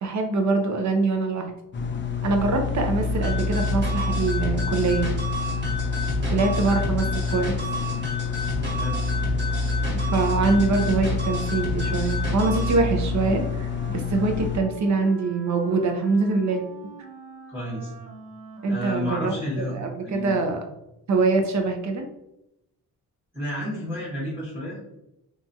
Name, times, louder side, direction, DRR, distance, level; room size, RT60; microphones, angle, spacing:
voice 1, 0.0-1.5 2.2-5.1 6.3-7.6 9.9-16.6 18.6-20.6 21.1-22.1, right 3 dB, 50° right, 4 dB, 0.6 m, -24 dB
sound 1, 1.7-14.6, left 4 dB, 30° left, 0.4 m, -27 dB
sound 2, 3.2-12.8, left 1 dB, 30° right, 1.3 m, -32 dB
Wind instrument woodwind instrument, 11.8-20.0, equal, 90° right, 0.7 m, -44 dB
voice 2, 17.5-17.9 18.7-19.7 20.0-20.4 23.3-25.0, left 1 dB, 5° right, -6 dB, 0.9 m, -31 dB
2.9 x 2.4 x 2.6 m, 0.86 s
cardioid pair, 90°, 38 cm